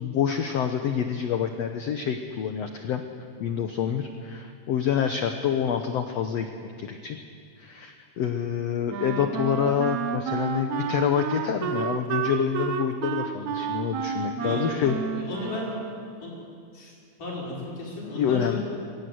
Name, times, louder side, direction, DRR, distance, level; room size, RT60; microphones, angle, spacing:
voice 1, 0.0-3.0 3.4-7.2 7.6-14.9 18.1-18.6, left 8 dB, 85° left, 6 dB, 1.4 m, -27 dB
Wind instrument woodwind instrument, 8.9-16.3, right 7 dB, 70° right, 1.9 m, -31 dB
voice 2, 14.3-15.7 16.2-16.3 16.7-16.9 17.2-18.6, left 1 dB, 60° left, -4 dB, 7.1 m, -34 dB
22.5 x 15.5 x 9.4 m, 2.3 s
omnidirectional pair, 4.2 m